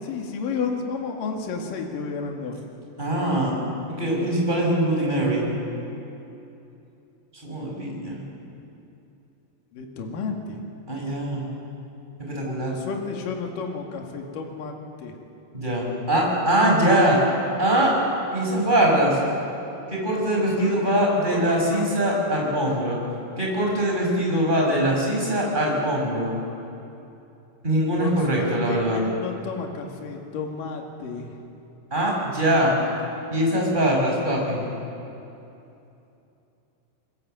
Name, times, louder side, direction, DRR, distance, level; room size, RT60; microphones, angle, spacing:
voice 1, 0.0-2.6 9.7-10.6 12.7-15.2 20.4-21.0 21.3-21.9 28.0-31.3, left 4 dB, 55° left, 2 dB, 3.4 m, -32 dB
voice 2, 3.0-3.5 3.9-5.5 7.4-8.2 10.9-11.5 12.3-12.7 15.5-17.2 17.6-17.9 18.3-19.2 19.9-23.0 23.4-26.3 27.6-29.0 31.9-32.7 33.3-34.6, right 1 dB, 10° right, -2 dB, 5.6 m, -22 dB
28.5 x 21.0 x 7.9 m, 2.8 s
omnidirectional pair, 5.4 m